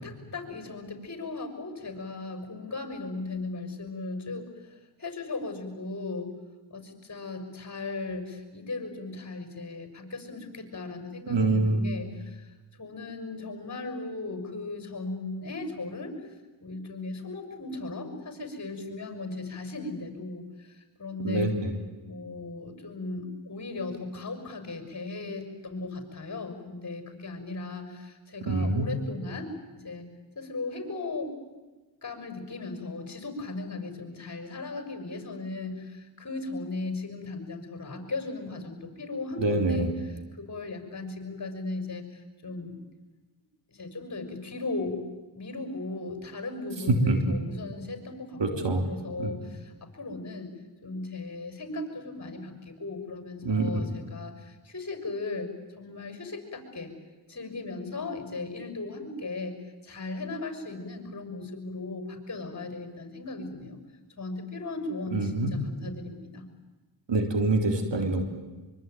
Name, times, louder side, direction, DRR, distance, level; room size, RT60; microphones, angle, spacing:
voice 1, 0.0-6.3 6.7-12.5 12.8-16.1 16.6-21.5 22.0-29.5 29.7-30.1 30.3-31.3 32.0-42.7 43.7-45.0 45.3-50.5 50.8-55.5 55.8-56.9 57.3-63.8 64.2-66.5, left 3 dB, 35° left, 7 dB, 6.3 m, -37 dB
voice 2, 11.3-11.9 21.2-21.8 28.5-28.9 39.4-39.9 47.1-47.2 48.4-48.8 49.2-49.3 53.4-53.8 65.1-65.5 67.1-68.2, right 2 dB, 60° right, 5 dB, 3.9 m, -25 dB
24.0 x 24.0 x 9.4 m, 1.2 s
cardioid pair, 60°, 48 cm